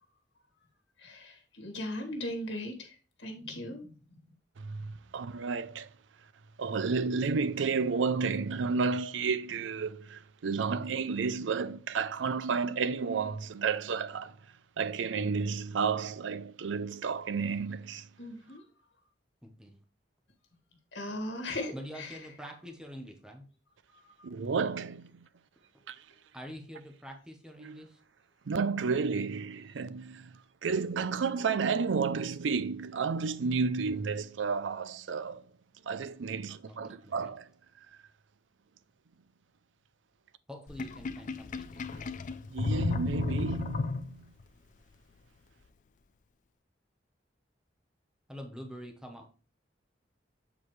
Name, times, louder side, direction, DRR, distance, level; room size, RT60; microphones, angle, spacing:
voice 1, 1.0-3.9 18.2-18.6 20.9-22.2 24.0-24.1, left 1 dB, 75° left, 1.6 m, -38 dB
voice 2, 4.6-5.9 6.6-14.4 14.8-18.1 24.2-25.3 25.9-26.0 27.6-27.8 28.5-30.3 30.6-35.4 35.9-37.5 42.5-44.3, right 5 dB, 85° right, 0.5 m, -31 dB
voice 3, 19.4-19.8 21.7-23.4 26.3-28.0 36.7-37.3 40.5-41.8 48.3-49.3, equal, 5° right, 0.9 m, -46 dB
Sink (filling or washing), 40.7-44.4, left 3 dB, 45° left, 0.4 m, -34 dB
7.5 x 4.7 x 3.2 m
head